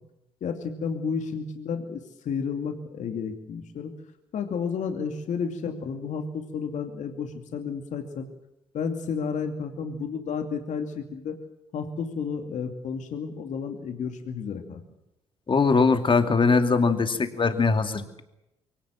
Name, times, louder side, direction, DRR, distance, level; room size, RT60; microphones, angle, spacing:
voice 1, 0.4-3.9 4.3-8.3 8.7-11.4 11.7-14.8, left 6 dB, 60° left, 5 dB, 2.5 m, -32 dB
voice 2, 15.5-18.2, left 4 dB, 35° left, 7 dB, 2.6 m, -21 dB
23.5 x 17.5 x 7.6 m, 0.88 s
hypercardioid pair, 50°, 14 cm